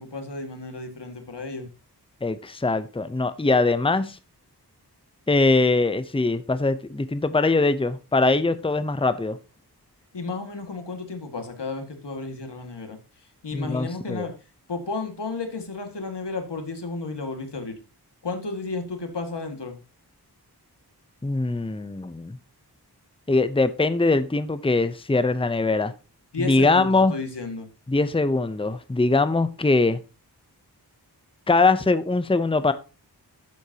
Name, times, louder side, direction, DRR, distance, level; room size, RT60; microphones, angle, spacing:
voice 1, 0.0-1.7 10.1-14.3 14.7-17.8 18.2-19.8 26.3-27.7, left 3 dB, 90° left, 2.0 m, -33 dB
voice 2, 2.2-4.2 5.3-9.4 13.5-14.3 21.2-22.4 23.3-25.9 26.5-27.1 27.9-30.0 31.5-32.7, left 3 dB, 15° left, 0.7 m, -22 dB
11.5 x 7.9 x 2.9 m
wide cardioid pair, 70°, 40 cm